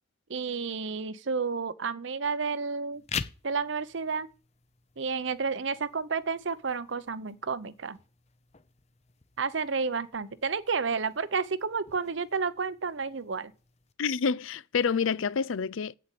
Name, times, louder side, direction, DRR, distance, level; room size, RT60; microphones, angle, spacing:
voice 1, 0.3-3.0 3.4-4.3 5.0-8.0 9.4-13.5, right 5 dB, 65° right, 0.7 m, -31 dB
sound 1, 2.9-13.9, left 6 dB, 35° left, 0.7 m, -45 dB
voice 2, 14.0-15.9, left 5 dB, 90° left, 0.5 m, -28 dB
9.2 x 8.6 x 8.3 m
head